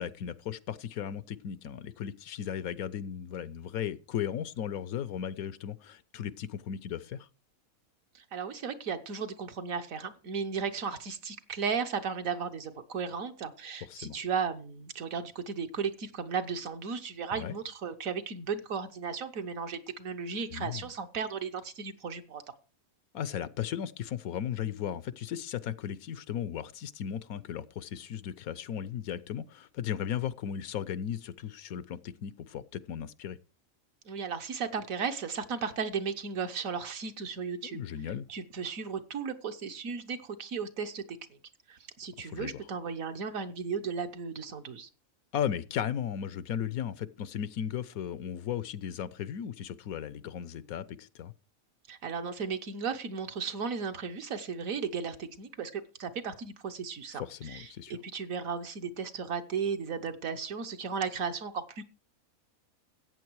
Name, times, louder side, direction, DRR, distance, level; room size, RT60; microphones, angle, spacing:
voice 1, 0.0-7.3 13.8-14.2 17.3-17.6 20.5-20.9 23.1-33.4 37.6-38.3 42.2-42.6 45.3-51.3 57.1-58.0, left 9 dB, 90° left, 1.2 m, -36 dB
voice 2, 8.1-22.4 34.1-37.8 38.3-41.2 41.7-44.9 51.9-61.9, right 6 dB, 75° right, 1.5 m, -35 dB
14.0 x 8.7 x 4.7 m
omnidirectional pair, 1.5 m